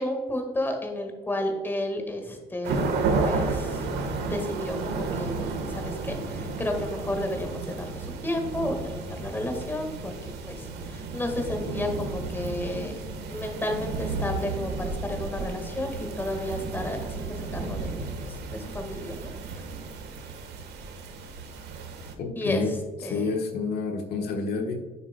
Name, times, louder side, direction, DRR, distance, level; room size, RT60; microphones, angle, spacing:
voice 1, 0.0-2.9 3.2-3.9 4.2-10.1 10.5-12.9 13.3-19.3 22.3-22.8 23.0-23.3, left 1 dB, 10° left, 3 dB, 1.6 m, -32 dB
sound 1, 2.6-22.1, right 4 dB, 80° right, 1.3 m, -32 dB
voice 2, 22.2-24.8, left 4 dB, 70° left, 3 dB, 1.2 m, -29 dB
9.4 x 7.2 x 2.2 m, 1.3 s
cardioid pair, 110°, 17 cm